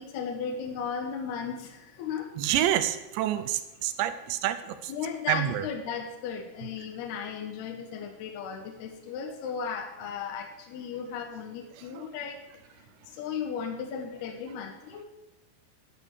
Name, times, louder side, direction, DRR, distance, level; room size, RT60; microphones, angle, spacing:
voice 1, 0.0-2.3 4.9-12.4 12.8-15.1, left 6 dB, 75° left, 4 dB, 3.0 m, -36 dB
voice 2, 2.4-4.9 5.3-5.7 11.9-12.0, right 12 dB, 85° right, 11 dB, 3.0 m, -28 dB
10.5 x 9.7 x 6.5 m, 1.0 s
omnidirectional pair, 5.0 m